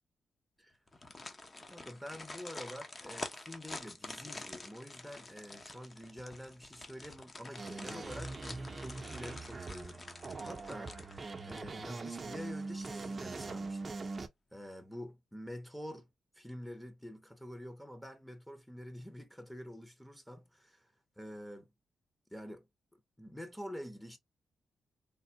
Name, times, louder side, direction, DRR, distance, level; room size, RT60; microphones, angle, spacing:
sound 1, 0.9-11.8 12.2-12.3 12.7-13.4 13.7-13.8, left 2 dB, 35° left, 0.8 m, -48 dB
voice 1, 1.7-14.0 14.5-16.1 16.3-21.7 22.3-22.7 22.9-24.2, equal, 5° left, 0.7 m, -47 dB
sound 2, 7.6-14.3, right 3 dB, 40° right, 0.6 m, -42 dB
3.5 x 2.1 x 2.7 m
cardioid pair, 65°, 0 cm